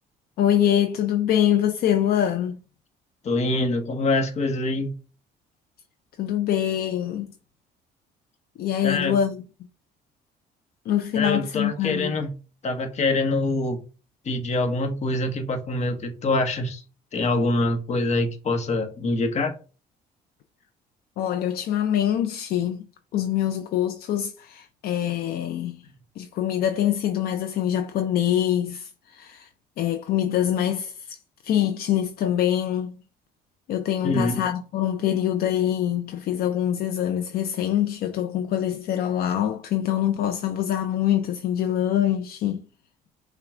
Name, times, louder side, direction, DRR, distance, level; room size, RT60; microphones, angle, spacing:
voice 1, 0.4-2.6 6.2-7.3 8.6-9.4 10.9-12.2 21.2-22.8 23.1-25.8 26.2-29.5 29.8-31.2 31.4-33.0 33.7-42.6, left 10 dB, 65° left, 0.5 m, -24 dB
voice 2, 3.2-4.9 8.8-9.2 11.1-12.3 12.6-13.8 14.2-16.8 17.1-19.5 34.0-34.4, left 2 dB, 40° left, 1.0 m, -25 dB
5.8 x 2.3 x 3.6 m
cardioid pair, 110°, 17 cm